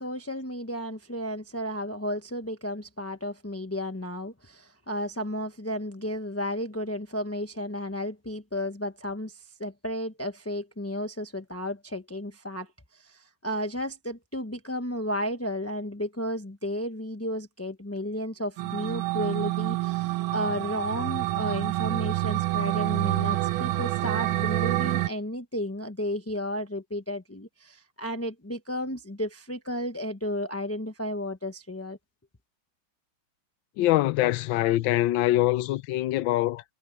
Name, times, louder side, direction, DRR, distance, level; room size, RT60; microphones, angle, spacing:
voice 1, 0.0-32.0, equal, 15° left, 0.5 m, -33 dB
sound 1, 18.6-25.1, right 17 dB, 85° right, 1.5 m, -27 dB
voice 2, 33.8-36.6, left 15 dB, 75° left, 1.3 m, -24 dB
omnidirectional pair, 2.2 m